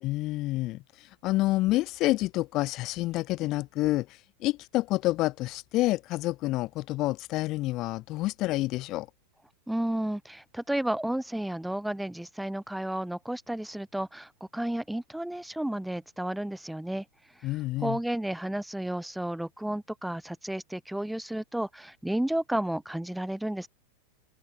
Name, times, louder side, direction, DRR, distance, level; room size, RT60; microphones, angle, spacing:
voice 1, 0.0-9.1 17.4-18.0, left 18 dB, 40° left, 3.3 m, -28 dB
voice 2, 9.7-17.0 17.4-17.5 17.8-23.7, right 1 dB, 5° right, 2.3 m, -32 dB
open air
figure-of-eight pair, 90°, 0 cm